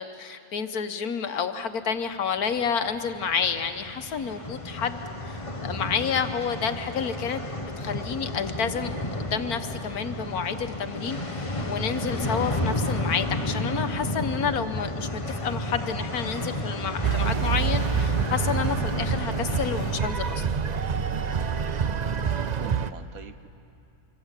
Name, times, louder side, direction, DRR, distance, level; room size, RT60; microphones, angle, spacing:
voice 1, 0.0-20.5, left 6 dB, 85° left, 9 dB, 1.7 m, -30 dB
sound 1, 2.5-20.0, left 1 dB, 20° left, 1.5 m, -32 dB
sound 2, 17.0-22.9, right 7 dB, 50° right, 0.5 m, -27 dB
voice 2, 22.0-23.5, right 6 dB, 75° right, 10 dB, 1.5 m, -43 dB
26.0 x 24.5 x 8.3 m, 2.7 s
omnidirectional pair, 1.5 m